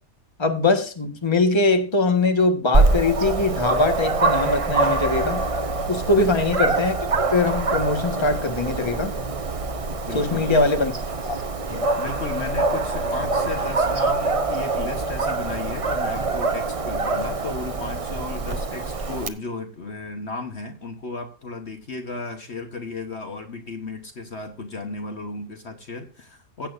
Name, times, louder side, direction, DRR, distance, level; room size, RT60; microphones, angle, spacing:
voice 1, 0.4-5.4 5.9-9.1 10.1-10.9 11.2-11.4 11.7-11.9, left 3 dB, 20° left, 5 dB, 1.4 m, -22 dB
Dog, 2.7-19.3, right 3 dB, 30° right, 0.7 m, -24 dB
voice 2, 6.1-6.5 10.1-10.8 12.0-26.7, left 3 dB, 50° left, 5 dB, 1.4 m, -34 dB
16.0 x 8.5 x 2.6 m, 0.37 s
omnidirectional pair, 1.5 m